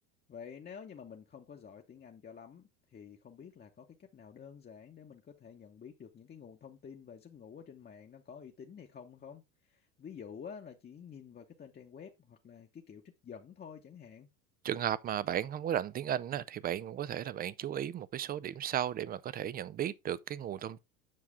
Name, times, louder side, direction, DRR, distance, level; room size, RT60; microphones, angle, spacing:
voice 1, 0.3-9.4 9.7-14.3, left 7 dB, 25° left, 0.9 m, -50 dB
voice 2, 14.6-20.8, right 10 dB, 25° right, 0.4 m, -35 dB
7.6 x 5.7 x 3.5 m
hypercardioid pair, 85°, 41 cm